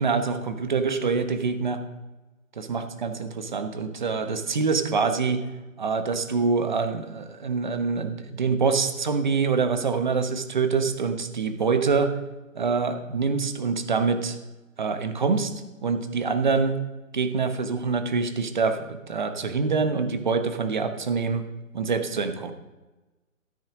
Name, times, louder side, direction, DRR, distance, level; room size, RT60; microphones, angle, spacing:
voice 1, 0.0-1.8 2.6-5.4 5.8-12.1 12.5-14.4 14.8-15.5 15.8-16.8 17.1-21.4 21.7-22.5, right 5 dB, 35° right, 9 dB, 1.1 m, -25 dB
13.5 x 7.6 x 5.9 m, 1.1 s
hypercardioid pair, 170°, 42 cm